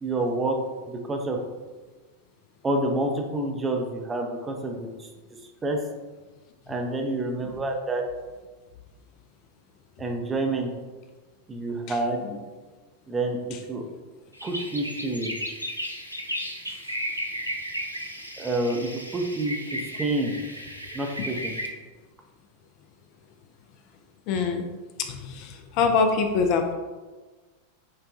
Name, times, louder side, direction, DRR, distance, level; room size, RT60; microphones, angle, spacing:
voice 1, 0.0-0.6 0.9-1.4 2.6-5.1 5.6-5.8 6.7-8.0 10.0-10.7 11.5-12.2 13.1-13.4 13.7-13.8 14.4-15.4 18.4-19.6 20.0-20.4 20.9-21.5, right 2 dB, 15° right, 3 dB, 0.5 m, -28 dB
sound 1, 14.3-21.7, equal, 90° right, 0.4 m, -34 dB
voice 2, 24.3-24.7 25.0-26.7, left 5 dB, 45° left, 5 dB, 0.4 m, -24 dB
6.3 x 2.2 x 2.5 m, 1.3 s
figure-of-eight pair, 90°, 0 cm